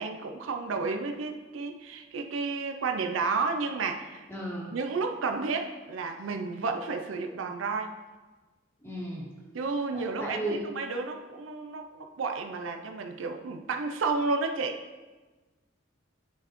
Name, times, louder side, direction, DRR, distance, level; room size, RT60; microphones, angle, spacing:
voice 1, 0.0-4.3 4.7-7.9 9.5-14.8, right 4 dB, 70° right, 5 dB, 0.5 m, -31 dB
voice 2, 4.3-4.7 8.8-9.3 9.9-10.6, right 1 dB, 15° left, -4 dB, 1.5 m, -35 dB
10.5 x 4.0 x 3.0 m, 1.3 s
head